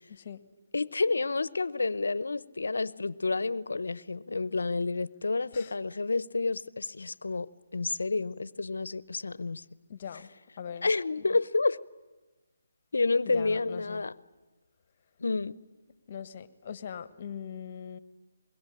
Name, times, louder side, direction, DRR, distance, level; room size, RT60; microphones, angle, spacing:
voice 1, 0.7-9.6 10.8-11.8 12.9-14.1 15.2-15.6, left 3 dB, 80° left, 0.9 m, -29 dB
voice 2, 9.9-10.3 10.6-10.9 13.2-14.0 16.1-18.0, left 8 dB, 40° left, 1.4 m, -41 dB
25.5 x 22.0 x 10.0 m
figure-of-eight pair, 155°, 0 cm